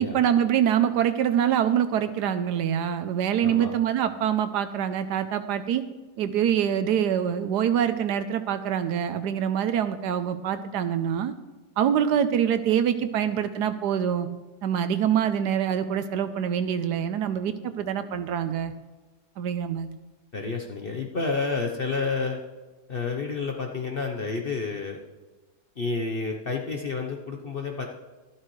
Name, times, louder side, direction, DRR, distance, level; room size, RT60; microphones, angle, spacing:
voice 1, 0.0-5.8 6.2-11.3 11.8-14.3 14.6-18.7 19.4-19.9, right 9 dB, 75° right, 10 dB, 1.2 m, -25 dB
voice 2, 20.3-22.4 22.9-25.0 25.8-27.9, left 4 dB, 45° left, 1 dB, 0.8 m, -30 dB
13.0 x 12.0 x 3.2 m, 1.2 s
omnidirectional pair, 1.9 m